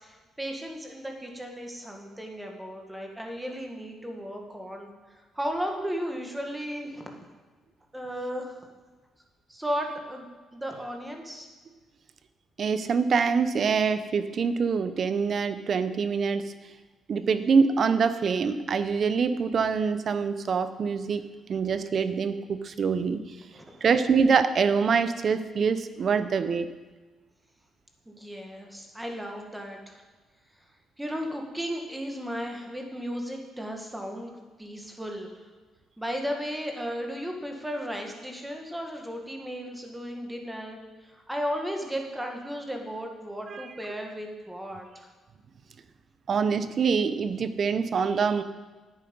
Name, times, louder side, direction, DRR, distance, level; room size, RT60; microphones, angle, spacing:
voice 1, 0.0-7.1 7.9-8.6 9.5-10.3 10.5-11.5 23.5-23.8 28.1-30.0 31.0-35.4 36.0-45.1, equal, 10° right, 2 dB, 2.0 m, -35 dB
voice 2, 12.6-16.5 17.1-23.2 23.8-26.7 43.5-43.7 46.3-48.4, right 5 dB, 50° right, 12 dB, 0.7 m, -25 dB
10.5 x 9.0 x 5.5 m, 1.3 s
cardioid pair, 90°, 0 cm